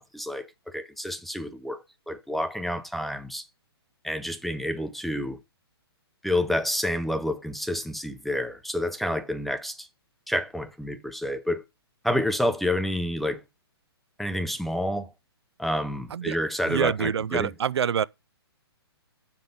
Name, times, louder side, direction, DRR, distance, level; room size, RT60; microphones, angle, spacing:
voice 1, 0.0-3.4 4.0-5.4 6.2-9.9 10.3-11.6 12.0-13.4 14.2-15.1 15.6-17.5, left 1 dB, ahead, 0.6 m, -29 dB
voice 2, 16.6-18.1, right 8 dB, 80° right, 0.4 m, -26 dB
7.1 x 6.0 x 5.2 m
hypercardioid pair, 135°, 14 cm